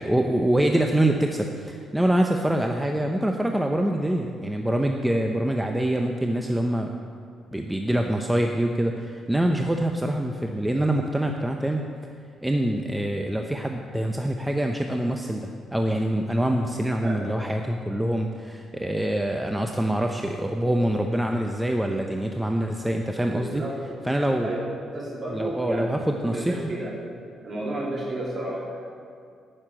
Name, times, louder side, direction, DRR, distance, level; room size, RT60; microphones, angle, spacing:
voice 1, 0.0-6.9 7.5-11.8 12.4-23.6 24.0-24.5 25.3-26.7, right 1 dB, 5° right, 3 dB, 0.7 m, -25 dB
voice 2, 23.3-23.8 24.4-24.6 24.9-25.9 26.2-26.9 27.4-28.9, right 1 dB, 40° right, -3 dB, 3.2 m, -32 dB
10.5 x 6.7 x 8.9 m, 2.3 s
cardioid pair, 90°, 0 cm